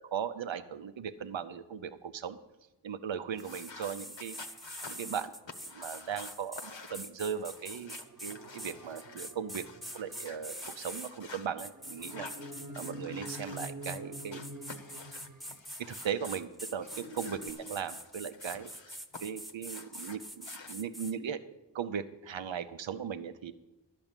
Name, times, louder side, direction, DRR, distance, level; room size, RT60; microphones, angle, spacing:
voice 1, 0.1-2.4 2.8-4.4 4.9-5.3 5.7-9.7 9.9-12.3 12.8-14.4 15.8-21.4 21.7-23.5, right 7 dB, 85° right, 11 dB, 0.6 m, -38 dB
sound 1, 3.3-9.2 9.5-11.5 12.0-14.0 14.3-16.4 16.8-19.2 19.5-20.8, left 4 dB, 80° left, 1.0 m, -50 dB
sound 2, 3.4-11.1 11.6-12.9 13.2-21.1, equal, ahead, 0.8 m, -45 dB
sound 3, 8.0-15.9 16.5-17.5, right 1 dB, 45° right, 0.9 m, -47 dB
12.0 x 6.1 x 8.9 m, 1.0 s
wide cardioid pair, 45°, 44 cm